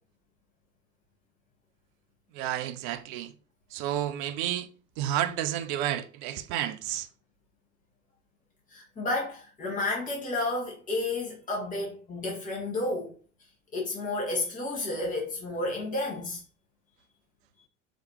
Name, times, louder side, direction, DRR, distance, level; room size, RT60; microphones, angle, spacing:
voice 1, 2.3-3.3 3.7-4.7 5.0-7.1, right 12 dB, 45° right, 0.5 m, -31 dB
voice 2, 8.7-13.1 13.7-16.4, left 2 dB, 20° left, 1.7 m, -31 dB
5.0 x 3.2 x 3.1 m
figure-of-eight pair, 75°, 38 cm